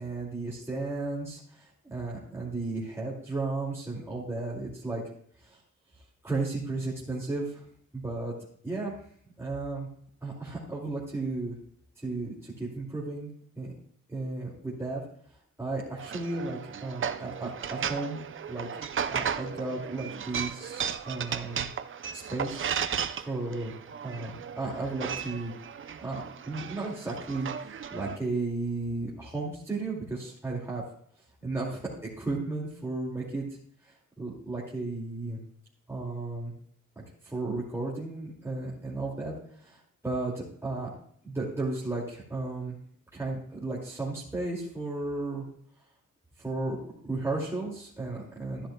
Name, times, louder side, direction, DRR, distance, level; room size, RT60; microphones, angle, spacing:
voice 1, 0.0-5.0 5.4-5.6 6.2-7.6 7.9-8.3 8.6-8.9 9.4-9.9 10.2-11.5 12.0-13.3 13.6-13.7 14.1-15.0 15.6-18.2 18.5-18.7 19.1-21.7 22.1-22.8 23.3-23.7 24.0-25.5 26.0-30.8 31.4-31.9 32.2-33.4 33.8-35.4 35.9-36.5 37.0-39.3 39.6-40.9 41.2-42.8 43.1-45.4 46.4-46.8 47.0-48.7, right 3 dB, 10° right, -6 dB, 2.4 m, -34 dB
sound 1, 16.0-28.2, right 7 dB, 40° right, 0.5 m, -35 dB
13.0 x 10.0 x 2.3 m, 0.63 s
wide cardioid pair, 125°, 31 cm